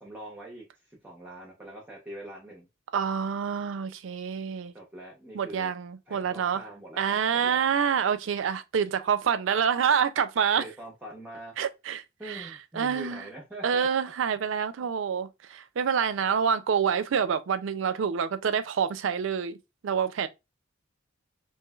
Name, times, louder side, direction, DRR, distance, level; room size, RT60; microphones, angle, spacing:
voice 1, 0.0-2.7 4.7-5.7 6.1-7.6 10.6-11.5 12.2-13.9 14.8-14.9, right 1 dB, 10° right, 0.6 m, -43 dB
voice 2, 2.9-4.7 5.3-6.6 7.0-10.6 11.6-12.5 12.8-13.2 13.6-19.6 19.8-20.3, right 7 dB, 65° right, 0.4 m, -27 dB
3.0 x 2.8 x 2.3 m
head